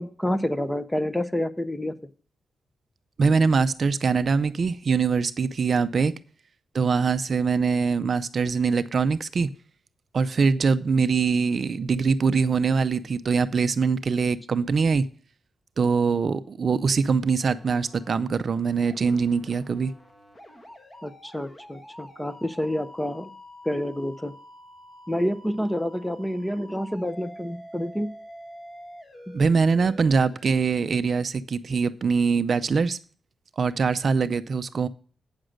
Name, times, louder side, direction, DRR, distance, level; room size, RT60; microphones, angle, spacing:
voice 1, 0.0-1.9 21.0-23.3 23.7-24.3 25.1-28.1, left 1 dB, 5° left, 11 dB, 0.6 m, -28 dB
voice 2, 3.2-6.1 6.7-9.5 10.1-15.0 15.8-19.9 29.3-33.0 33.6-34.9, right 5 dB, 45° right, 12 dB, 0.5 m, -23 dB
sound 1, 17.4-18.1 18.6-30.5, equal, 20° left, 1.4 m, -47 dB
8.8 x 6.4 x 6.3 m, 0.42 s
wide cardioid pair, 140°, 0 cm